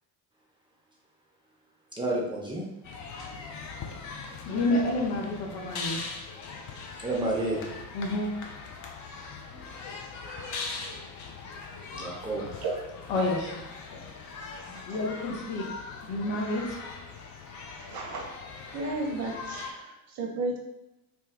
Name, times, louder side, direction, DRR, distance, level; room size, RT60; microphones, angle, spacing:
voice 1, 2.0-2.7 7.0-7.7 9.5-9.7 11.9-12.5, right 1 dB, 10° right, -4 dB, 0.7 m, -30 dB
sound 1, 2.8-19.7, left 4 dB, 40° left, 0.5 m, -41 dB
voice 2, 4.4-6.0 7.9-8.3 13.1-13.6 13.9-14.0 14.9-15.7 16.0-16.7, left 2 dB, 55° left, -3 dB, 1.0 m, -29 dB
voice 3, 10.2-10.5 12.4-13.0 14.7-15.0 17.8-18.3 18.7-20.6, right 2 dB, 50° right, 1 dB, 0.7 m, -34 dB
2.8 x 2.2 x 3.5 m, 0.95 s
hypercardioid pair, 60°, 49 cm